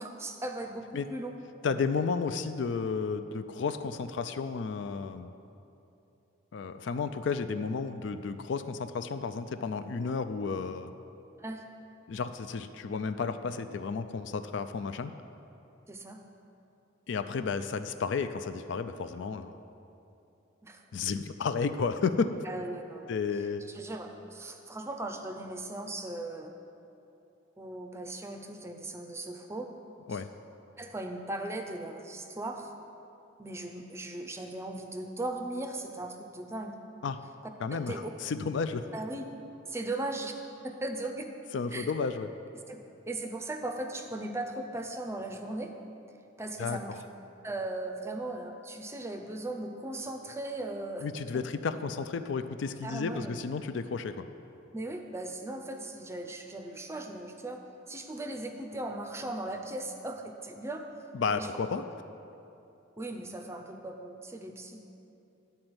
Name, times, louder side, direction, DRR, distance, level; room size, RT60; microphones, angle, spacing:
voice 1, 0.0-1.4 11.4-11.7 15.9-16.2 20.6-20.8 22.5-23.1 23.7-26.5 27.6-29.7 30.1-30.2 30.8-32.7 33.4-36.8 37.7-38.1 38.9-39.3 39.7-40.3 40.6-41.3 41.7-41.9 42.7-45.7 46.4-47.0 47.4-51.1 52.8-53.4 54.7-60.9 61.3-61.5 63.0-64.8, right 2 dB, 15° right, 4 dB, 0.5 m, -38 dB
voice 2, 1.6-5.3 6.5-10.9 12.1-15.1 17.1-19.5 20.9-22.3 23.1-23.6 30.1-30.3 37.0-37.2 37.6-38.9 41.5-42.3 46.6-46.8 51.0-54.3 61.1-61.8, left 5 dB, 65° left, 10 dB, 0.4 m, -32 dB
10.5 x 4.3 x 7.8 m, 2.8 s
head